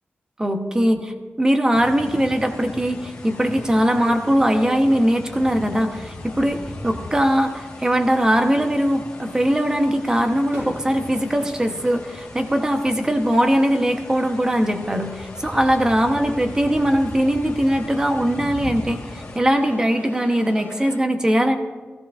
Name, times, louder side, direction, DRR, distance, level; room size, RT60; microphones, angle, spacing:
voice 1, 0.4-6.6 6.8-21.6, equal, 15° right, 5 dB, 1.0 m, -20 dB
sound 1, 1.7-19.4, left 1 dB, 15° left, 1.2 m, -39 dB
sound 2, 2.0-21.0, left 3 dB, 75° left, 1.6 m, -43 dB
Fireworks, 9.9-13.0 13.3-13.9 15.4-16.2, equal, 55° right, 4.5 m, -43 dB
15.5 x 14.5 x 2.5 m, 1.4 s
wide cardioid pair, 130°, 4 cm